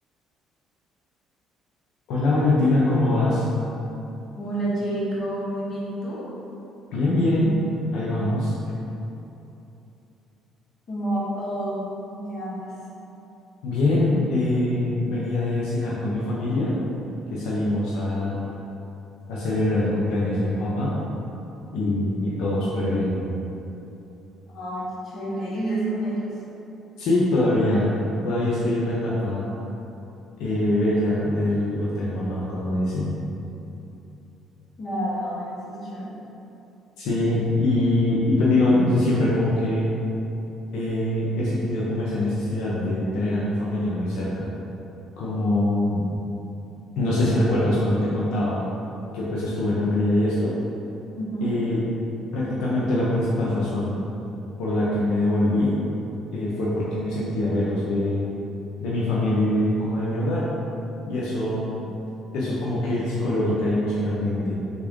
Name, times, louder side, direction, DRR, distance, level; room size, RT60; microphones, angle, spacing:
voice 1, 2.1-3.5 6.9-7.6 7.9-8.5 13.6-16.7 17.3-18.5 19.3-20.9 21.7-23.1 27.0-27.9 28.2-29.5 30.4-33.1 37.0-39.9 40.7-44.5 45.2-46.0 47.0-48.6 49.1-50.6 51.4-51.8 52.3-53.9 54.6-55.8 56.3-58.3 58.8-60.5 61.1-61.8 62.3-64.6, left 1 dB, 80° left, -7 dB, 0.5 m, -23 dB
voice 2, 4.4-6.3 10.9-12.7 24.5-26.4 34.8-36.2 51.2-51.6, right 1 dB, 45° left, -7 dB, 1.0 m, -29 dB
3.5 x 2.4 x 3.5 m, 2.9 s
cardioid pair, 95°, 0 cm